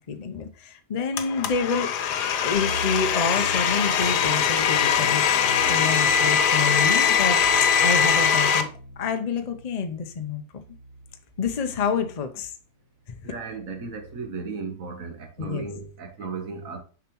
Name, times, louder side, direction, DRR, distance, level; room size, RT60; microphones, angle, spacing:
voice 1, 0.0-1.9 2.4-8.7 9.0-10.6 11.4-12.5 13.2-13.3 15.4-15.7, left 5 dB, 60° left, 0.4 m, -28 dB
Domestic sounds home sounds, 1.2-8.6, left 7 dB, 90° left, 1.3 m, -21 dB
sound 1, 2.5-12.4 13.4-14.4, right 1 dB, 40° right, 2.2 m, -40 dB
voice 2, 13.2-16.8, right 4 dB, 55° right, 1.5 m, -35 dB
6.9 x 4.9 x 3.0 m
omnidirectional pair, 1.7 m